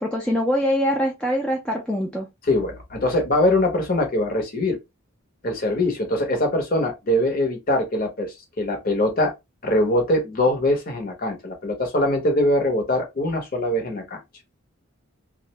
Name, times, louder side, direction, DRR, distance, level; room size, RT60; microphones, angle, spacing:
voice 1, 0.0-2.3, equal, 5° left, 0.4 m, -23 dB
voice 2, 2.4-4.8 5.4-9.3 9.6-14.2, left 1 dB, 40° left, 0.7 m, -22 dB
2.4 x 2.1 x 2.8 m
head